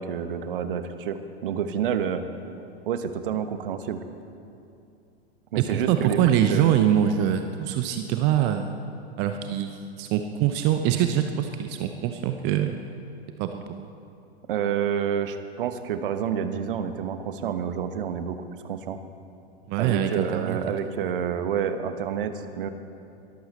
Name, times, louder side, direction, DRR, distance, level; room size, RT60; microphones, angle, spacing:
voice 1, 0.0-2.3 2.6-4.0 5.5-6.8 14.5-19.0 19.8-22.7, right 8 dB, 55° right, 10 dB, 1.2 m, -29 dB
voice 2, 5.6-8.7 9.2-12.7 13.4-13.9 19.7-20.6, right 10 dB, 30° right, 7 dB, 0.8 m, -24 dB
22.5 x 14.0 x 4.2 m, 2.6 s
figure-of-eight pair, 95°, 32 cm